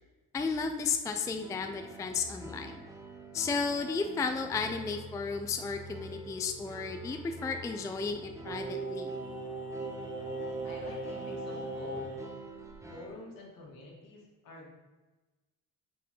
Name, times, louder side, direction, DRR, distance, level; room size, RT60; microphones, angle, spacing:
voice 1, 0.3-2.8 3.3-9.1, left 5 dB, 10° left, 6 dB, 0.3 m, -33 dB
sound 1, 1.4-13.1, right 2 dB, 10° right, 1.0 m, -47 dB
Singing, 8.5-12.3 12.6-12.7, right 2 dB, 30° right, 1.6 m, -38 dB
voice 2, 10.6-12.0 12.9-14.7, left 1 dB, 70° left, -2 dB, 2.2 m, -48 dB
6.1 x 4.5 x 5.3 m, 1.2 s
cardioid pair, 125°, 35 cm